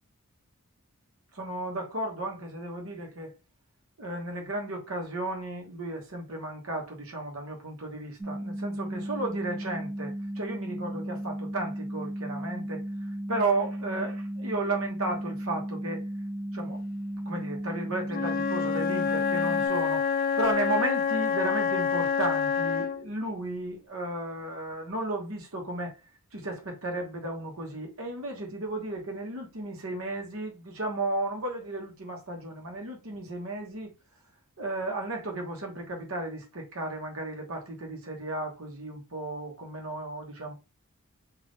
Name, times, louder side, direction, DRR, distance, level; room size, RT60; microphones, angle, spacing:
voice 1, 1.3-3.3 4.0-16.0 16.5-16.8 17.3-20.1 20.4-25.9 26.3-33.9 34.6-40.5, right 2 dB, 70° right, 1.1 m, -34 dB
sound 1, 8.2-19.7, right 1 dB, 15° right, 0.6 m, -35 dB
Wind instrument woodwind instrument, 18.1-23.1, left 6 dB, 40° left, 0.4 m, -27 dB
3.5 x 2.5 x 3.9 m
head